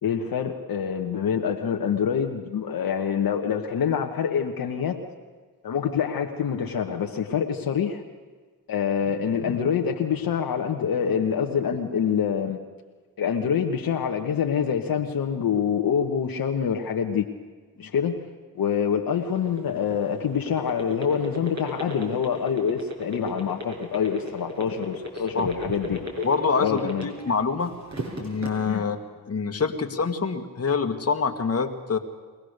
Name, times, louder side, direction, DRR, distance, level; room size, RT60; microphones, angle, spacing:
voice 1, 0.0-5.0 5.6-8.0 8.7-12.6 13.2-17.3 17.8-18.2 18.5-26.0 26.6-27.1 28.6-28.8, left 7 dB, 60° left, 3 dB, 1.3 m, -26 dB
sound 1, 19.1-27.4 27.7-28.5, left 1 dB, 45° right, 5.9 m, -33 dB
voice 2, 26.2-27.8 28.2-29.0 29.3-32.0, left 5 dB, 40° left, 5 dB, 1.8 m, -25 dB
23.5 x 17.5 x 6.6 m, 1.4 s
supercardioid pair, 60°, 39 cm